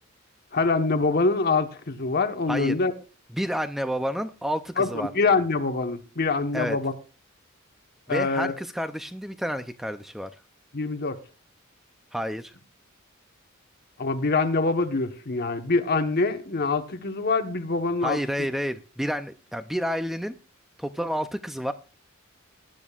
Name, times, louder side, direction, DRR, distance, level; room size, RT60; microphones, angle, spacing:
voice 1, 0.5-2.9 4.8-6.9 8.1-8.5 10.7-11.2 14.0-18.2, left 3 dB, 50° left, 1.1 m, -24 dB
voice 2, 3.3-5.1 6.5-6.8 8.1-10.3 12.1-12.6 18.0-20.4 20.8-21.7, equal, ahead, 0.5 m, -30 dB
19.5 x 10.0 x 2.4 m
head